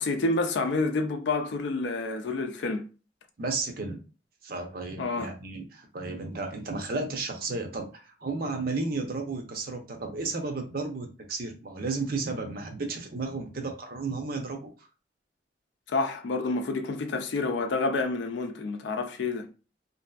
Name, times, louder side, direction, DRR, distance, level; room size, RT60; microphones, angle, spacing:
voice 1, 0.0-2.8 5.0-5.3 15.9-19.5, left 3 dB, 80° left, 0.4 m, -28 dB
voice 2, 3.4-4.0 4.4-14.7, right 3 dB, 55° right, 0.6 m, -33 dB
2.6 x 2.5 x 2.3 m
head